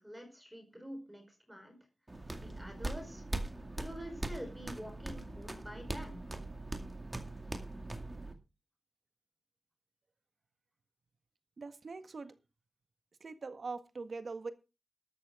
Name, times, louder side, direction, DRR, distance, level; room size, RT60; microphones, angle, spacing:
voice 1, 0.0-1.8 2.3-3.2 3.8-6.3, equal, 5° right, 4 dB, 4.5 m, -47 dB
sound 1, 2.1-8.3, right 2 dB, 20° right, 2.2 m, -41 dB
voice 2, 11.6-12.4 13.2-14.5, right 4 dB, 60° right, 10 dB, 1.6 m, -42 dB
13.0 x 13.0 x 3.7 m, 0.29 s
wide cardioid pair, 100°, 0 cm